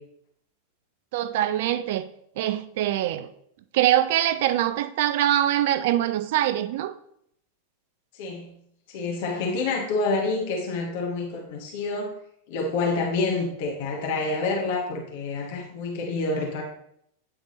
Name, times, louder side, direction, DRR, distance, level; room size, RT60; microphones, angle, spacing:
voice 1, 1.1-2.1 2.4-3.3 3.7-6.9, right 12 dB, 50° right, 13 dB, 0.4 m, -23 dB
voice 2, 8.1-8.5 8.9-12.1 12.5-16.6, left 3 dB, 50° left, 0 dB, 1.2 m, -28 dB
8.7 x 3.4 x 4.0 m, 0.71 s
figure-of-eight pair, 90°, 0 cm